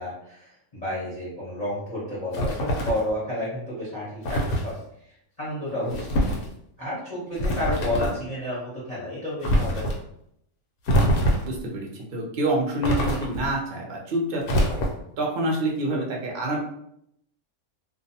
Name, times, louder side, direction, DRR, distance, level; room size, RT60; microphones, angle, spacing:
voice 1, 0.0-4.8 5.4-6.2 6.8-9.9, left 1 dB, 30° left, -9 dB, 0.8 m, -31 dB
sound 1, 2.3-3.1 4.2-4.7 5.9-6.5 7.4-8.2 9.4-10.0 10.9-11.6 12.8-13.5 14.4-15.2, equal, 80° left, 1.1 m, -24 dB
voice 2, 5.7-6.0 11.5-14.8 15.2-16.6, right 1 dB, 55° right, -1 dB, 0.6 m, -27 dB
2.5 x 2.1 x 2.7 m, 0.73 s
omnidirectional pair, 1.6 m